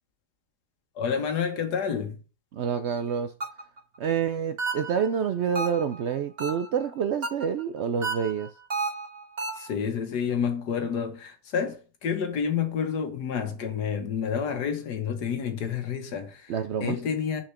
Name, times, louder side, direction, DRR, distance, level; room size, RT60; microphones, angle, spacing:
voice 1, 1.0-2.2 9.6-16.5 16.8-17.4, left 7 dB, 85° left, 1.8 m, -29 dB
voice 2, 2.5-3.3 4.0-8.5 16.5-17.0, right 7 dB, 75° right, 0.6 m, -28 dB
sound 1, 3.4-3.8 4.6-5.1 5.5-6.0 6.4-6.8 7.2-7.6 8.0-9.7, right 4 dB, 40° right, 1.8 m, -32 dB
6.5 x 4.4 x 5.7 m
omnidirectional pair, 1.7 m